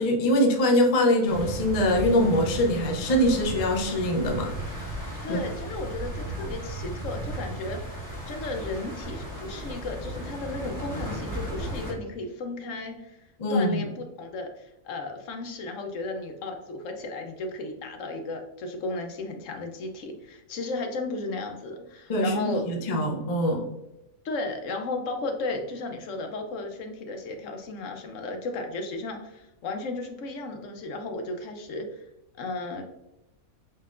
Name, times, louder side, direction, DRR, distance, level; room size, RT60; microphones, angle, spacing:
voice 1, 0.0-4.9 5.3-5.4 13.4-13.9 22.1-23.7, left 1 dB, 45° left, 2 dB, 0.5 m, -23 dB
sound 1, 1.3-11.9, right 1 dB, 15° left, 1.1 m, -35 dB
voice 2, 5.2-8.0 8.3-13.2 13.5-22.7 24.2-32.0 32.4-32.8, left 2 dB, 70° left, 4 dB, 1.0 m, -34 dB
4.3 x 3.8 x 2.4 m, 0.90 s
omnidirectional pair, 1.5 m